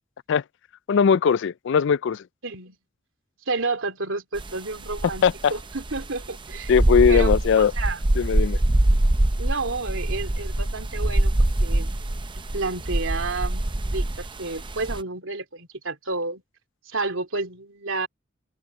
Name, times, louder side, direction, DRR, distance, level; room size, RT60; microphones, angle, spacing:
voice 1, 0.9-2.2 5.2-5.5 6.7-7.7 8.2-8.6, left 6 dB, 65° left, 0.4 m, -19 dB
voice 2, 2.4-2.8 3.5-5.2 5.5-6.7 7.1-8.1 9.4-11.3 11.6-11.9 12.5-16.4 16.9-18.1, right 3 dB, 80° right, 3.0 m, -30 dB
sound 1, 4.4-4.5 4.8-15.0, right 1 dB, 25° right, 0.7 m, -24 dB
head